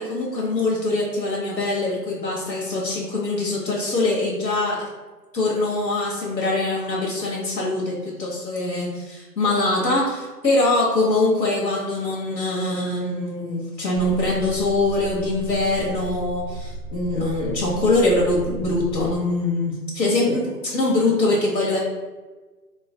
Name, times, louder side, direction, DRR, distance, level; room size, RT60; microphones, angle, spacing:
voice 1, 0.0-4.8 5.3-21.8, left 2 dB, 80° left, -4 dB, 1.3 m, -23 dB
sound 1, 14.0-19.2, right 2 dB, 75° right, 0.7 m, -34 dB
3.1 x 2.7 x 3.8 m, 1.3 s
hypercardioid pair, 170°, 50 cm